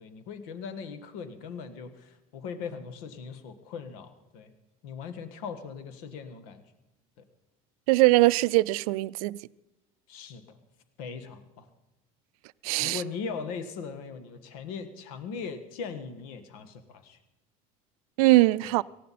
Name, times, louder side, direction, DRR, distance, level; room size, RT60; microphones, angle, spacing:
voice 1, 0.0-4.5 4.8-6.6 7.2-7.3 10.1-10.6 11.0-11.7 12.8-17.2 18.6-18.7, left 5 dB, 80° left, 1.5 m, -39 dB
voice 2, 7.9-9.4 12.6-13.0 18.2-18.8, right 20 dB, 80° right, 0.4 m, -21 dB
18.5 x 15.0 x 4.2 m
supercardioid pair, 90°, 18 cm